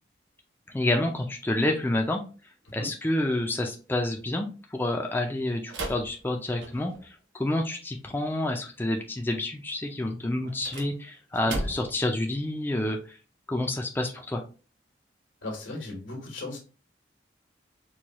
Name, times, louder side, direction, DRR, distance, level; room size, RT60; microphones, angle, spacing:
voice 1, 0.7-2.2 2.7-13.2 13.5-14.4, left 1 dB, 10° left, 2 dB, 0.4 m, -29 dB
sound 1, 5.7-7.1 10.4-12.1, right 1 dB, 80° right, 0.8 m, -36 dB
voice 2, 15.4-16.6, left 2 dB, 90° left, 1 dB, 1.3 m, -36 dB
4.6 x 2.3 x 2.9 m, 0.35 s
head